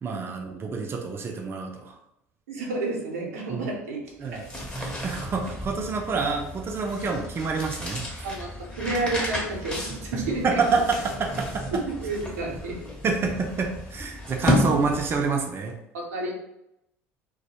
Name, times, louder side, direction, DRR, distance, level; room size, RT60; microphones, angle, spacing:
voice 1, 0.0-1.9 3.5-3.7 4.2-4.4 4.8-8.3 10.4-11.7 13.0-15.8, right 4 dB, 30° right, 1 dB, 0.4 m, -27 dB
voice 2, 2.5-4.0 4.3-4.5 8.2-8.5 8.8-10.5 11.7-12.8 15.9-16.3, right 2 dB, 85° right, -2 dB, 0.6 m, -30 dB
sound 1, 4.2-15.4, left 1 dB, 10° left, 0.8 m, -32 dB
2.1 x 2.1 x 2.8 m, 0.82 s
hypercardioid pair, 75°, 7 cm